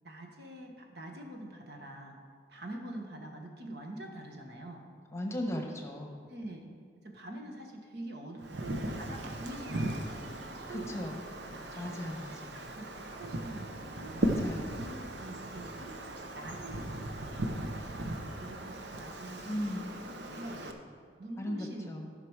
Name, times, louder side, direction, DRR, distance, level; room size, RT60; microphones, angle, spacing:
voice 1, 0.0-2.2 2.5-4.9 6.3-6.6 7.0-11.1 11.7-12.1 12.4-14.1 14.5-16.0 16.3-19.6 20.3-20.8 21.1-22.0, right 1 dB, 65° right, 2 dB, 1.4 m, -45 dB
voice 2, 5.1-6.2 10.7-11.2 11.7-12.6 14.2-14.8 19.5-19.9 21.4-22.1, left 1 dB, 15° left, 2 dB, 1.0 m, -37 dB
Wind, 8.4-20.7, right 1 dB, 80° right, 0.9 m, -38 dB
14.5 x 5.9 x 4.8 m, 2.1 s
head